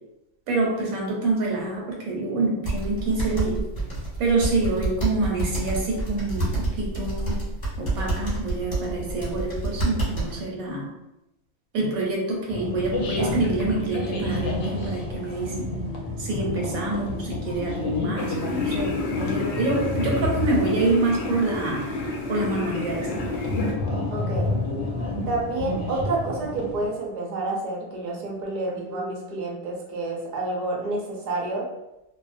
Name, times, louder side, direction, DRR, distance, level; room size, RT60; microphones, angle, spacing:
voice 1, 0.5-3.6 4.2-7.4 7.8-10.9 11.7-15.7 16.2-22.0 22.3-23.1, right 2 dB, 85° right, -1 dB, 1.1 m, -26 dB
sound 1, 2.6-10.4, right 2 dB, 25° left, 1.1 m, -28 dB
sound 2, 12.5-26.9, left 2 dB, 65° left, 0.9 m, -30 dB
sound 3, 18.2-23.7, left 2 dB, 85° left, 0.4 m, -32 dB
voice 2, 24.1-24.5 25.3-31.7, right 2 dB, 55° right, -2 dB, 0.5 m, -29 dB
2.5 x 2.0 x 2.4 m, 0.91 s
omnidirectional pair, 1.5 m